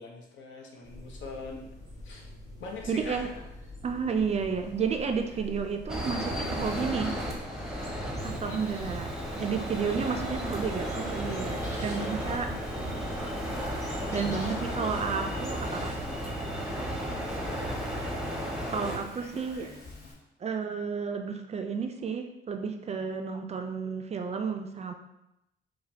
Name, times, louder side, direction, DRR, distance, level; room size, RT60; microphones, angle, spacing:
voice 1, 0.0-1.6 2.0-2.3 2.6-3.4 8.4-8.7 9.9-10.3 11.9-12.2 14.4-15.0 16.7-17.8, left 3 dB, 70° left, 1 dB, 0.8 m, -43 dB
sound 1, 0.8-16.2, left 1 dB, 15° left, 1.1 m, -46 dB
voice 2, 2.9-3.3 3.8-7.1 8.2-9.1 9.4-12.5 14.1-16.0 18.7-19.7 20.4-24.9, right 5 dB, 35° right, 5 dB, 0.3 m, -32 dB
sound 2, 5.9-19.0, equal, 5° right, 0.7 m, -34 dB
Speech, 8.2-20.1, left 2 dB, 55° left, 1.1 m, -47 dB
4.9 x 2.2 x 2.7 m, 0.87 s
cardioid pair, 90°, 20 cm